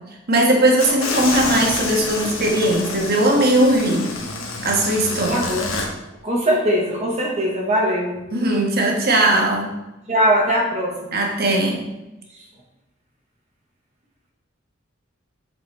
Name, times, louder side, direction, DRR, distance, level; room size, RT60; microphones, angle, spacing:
voice 1, 0.3-4.1 4.6-5.4 8.3-9.7 11.1-11.8, right 1 dB, 50° right, -1 dB, 1.4 m, -18 dB
sound 1, 0.8-5.9, left 3 dB, 80° left, 1.2 m, -28 dB
voice 2, 5.1-5.8 6.2-8.2 10.1-11.1 12.3-12.4, equal, 35° right, -2 dB, 1.1 m, -21 dB
7.7 x 5.1 x 3.3 m, 0.99 s
head